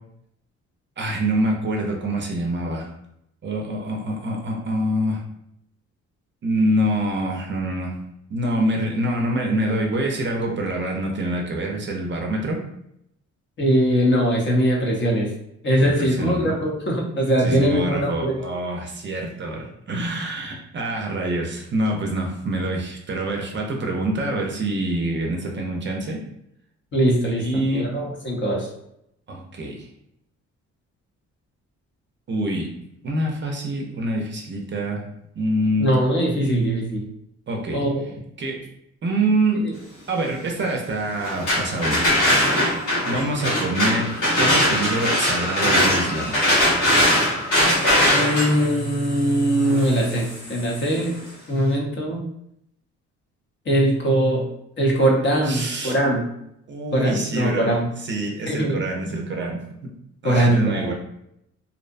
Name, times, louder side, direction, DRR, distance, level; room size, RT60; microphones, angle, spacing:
voice 1, 1.0-2.9 3.4-5.2 6.4-8.0 8.3-12.6 15.8-16.5 17.4-26.2 27.4-27.8 29.3-29.9 32.3-32.7 33.0-35.0 35.4-35.9 37.5-37.8 38.4-38.6 39.0-39.7 40.1-42.1 43.1-46.4 55.4-56.0 56.7-57.7 58.0-59.9 60.2-60.9, right 1 dB, 40° right, 1 dB, 0.5 m, -25 dB
voice 2, 13.6-15.3 15.6-18.4 26.9-27.4 27.7-28.7 35.8-37.0 37.7-38.0 39.6-39.7 48.1-51.1 51.5-52.2 53.7-54.5 54.8-56.3 56.9-57.9 58.5-58.7 60.2-60.9, right 1 dB, 40° left, -1 dB, 0.7 m, -21 dB
sound 1, 41.2-51.0, left 1 dB, 80° left, 1.2 m, -21 dB
2.6 x 2.1 x 2.5 m, 0.77 s
cardioid pair, 90°, 30 cm